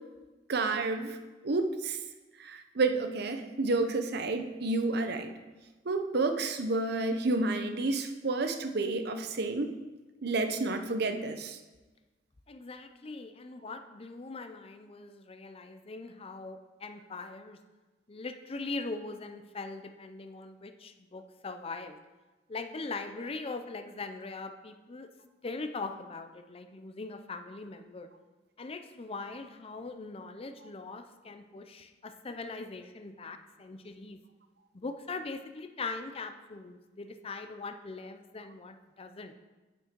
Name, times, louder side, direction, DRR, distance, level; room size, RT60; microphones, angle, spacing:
voice 1, 0.5-1.2 1.4-2.0 2.4-5.3 5.9-9.7 10.2-11.6, right 3 dB, 60° right, 7 dB, 0.8 m, -30 dB
voice 2, 12.5-17.6 18.1-22.0 22.5-25.1 25.4-28.1 28.6-34.2 34.7-39.3, left 3 dB, 30° left, 8 dB, 0.5 m, -41 dB
9.0 x 7.3 x 4.5 m, 1.2 s
head